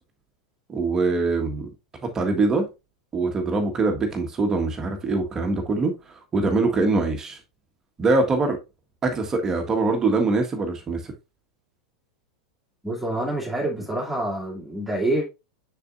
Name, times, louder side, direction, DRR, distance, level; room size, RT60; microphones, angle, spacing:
voice 1, 0.7-1.7 2.0-2.7 3.1-5.9 6.3-7.4 8.0-8.6 9.0-11.1, right 3 dB, 20° right, 1.6 m, -23 dB
voice 2, 12.8-15.3, right 1 dB, 5° right, 2.5 m, -27 dB
6.8 x 6.8 x 2.6 m
figure-of-eight pair, 90°, 3 cm